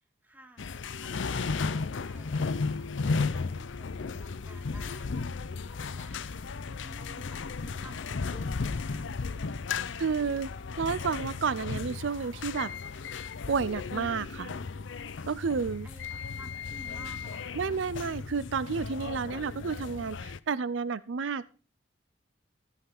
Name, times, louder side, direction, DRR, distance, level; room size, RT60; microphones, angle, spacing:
voice 1, 0.2-9.2 15.8-17.8, right 1 dB, 10° right, 7 dB, 1.2 m, -54 dB
sound 1, 0.6-20.4, left 4 dB, 70° left, 0.6 m, -35 dB
voice 2, 10.0-10.5 10.8-12.7 13.5-14.5 15.3-15.9 17.5-21.5, right 5 dB, 75° right, 17 dB, 0.5 m, -31 dB
14.5 x 5.8 x 5.9 m, 0.36 s
head